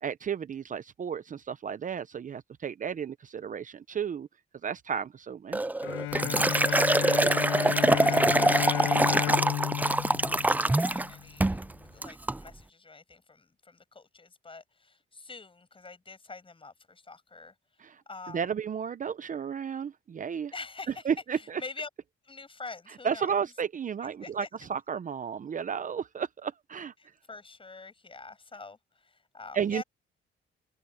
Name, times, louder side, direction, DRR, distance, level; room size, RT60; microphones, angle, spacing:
voice 1, 0.0-4.3 4.6-5.6 17.8-18.0 18.3-20.5 21.0-21.6 23.0-24.4 24.7-26.9 29.5-29.8, right 7 dB, 40° right, 0.8 m, -33 dB
Liquid, 5.5-11.1 11.4-11.7 12.0-12.4, right 2 dB, 10° right, 0.5 m, -24 dB
Bowed string instrument, 5.8-11.2, left 15 dB, 90° left, 1.3 m, -32 dB
voice 2, 6.6-9.3 9.7-11.6 11.9-18.4 20.5-21.9 22.2-23.5 24.0-24.5 27.0-29.8, left 4 dB, 25° left, 6.4 m, -46 dB
cardioid pair, 90°, 20 cm